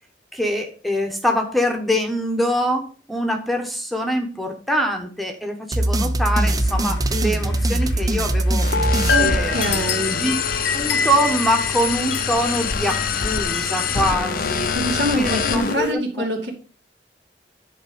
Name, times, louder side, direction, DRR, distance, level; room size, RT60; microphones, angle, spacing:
voice 1, 0.3-8.7 9.2-9.8 10.1-10.3 10.7-14.7 15.1-16.3, equal, ahead, 4 dB, 1.1 m, -24 dB
sound 1, 5.7-10.0, right 1 dB, 20° right, 0.5 m, -22 dB
sound 2, 6.4-15.9, left 4 dB, 75° left, 1.0 m, -28 dB
sound 3, 8.6-15.7, left 6 dB, 55° left, 0.7 m, -25 dB
voice 2, 9.1-10.2 14.7-16.5, equal, 75° right, 1 dB, 2.5 m, -24 dB
10.0 x 4.4 x 5.1 m, 0.37 s
head